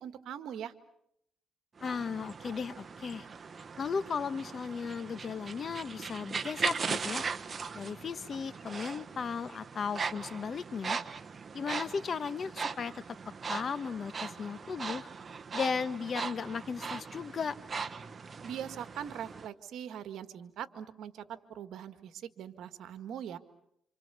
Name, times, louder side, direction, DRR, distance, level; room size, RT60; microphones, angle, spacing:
voice 1, 0.0-0.7 18.4-23.4, right 9 dB, 75° right, 10 dB, 1.7 m, -41 dB
voice 2, 1.8-3.3 3.8-7.3 7.7-11.0 11.5-13.0 13.5-15.1 15.5-17.6, left 6 dB, 45° left, 14 dB, 1.2 m, -36 dB
sound 1, 1.8-19.5, right 5 dB, 40° right, 1.2 m, -39 dB
27.5 x 27.0 x 7.0 m, 0.76 s
cardioid pair, 90°, 0 cm